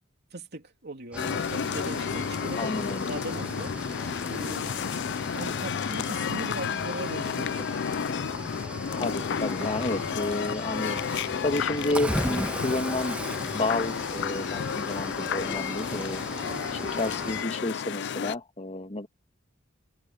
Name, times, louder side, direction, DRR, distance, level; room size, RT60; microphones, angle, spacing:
voice 1, 0.3-2.7 3.0-3.7 4.3-4.9 5.3-8.0 16.5-16.9, right 2 dB, 55° right, 3.4 m, -39 dB
Cricket / Waves surf, 1.1-17.4, right 1 dB, 5° right, 1.6 m, -38 dB
sound 1, 1.2-18.4, left 7 dB, 60° left, 0.4 m, -31 dB
voice 2, 2.6-3.1 8.9-11.0 11.4-13.2 13.5-16.2 16.7-19.1, left 2 dB, 30° left, 1.9 m, -31 dB
head